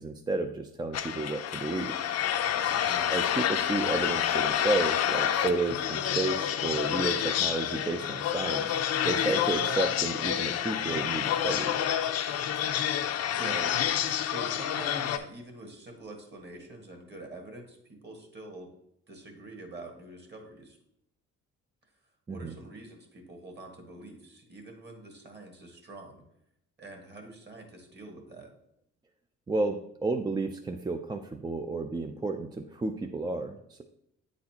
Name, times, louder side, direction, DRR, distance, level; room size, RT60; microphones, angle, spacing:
voice 1, 0.0-1.9 3.1-11.9 22.3-22.5 29.5-33.8, right 3 dB, 15° right, 5 dB, 0.3 m, -32 dB
sound 1, 0.9-15.2, left 10 dB, 55° left, 0.5 m, -28 dB
voice 2, 2.7-3.1 13.4-18.7 19.1-20.8 22.3-26.2 26.8-28.5, right 2 dB, 35° right, 2 dB, 1.6 m, -45 dB
8.6 x 4.1 x 2.9 m, 0.76 s
cardioid pair, 90°, 30 cm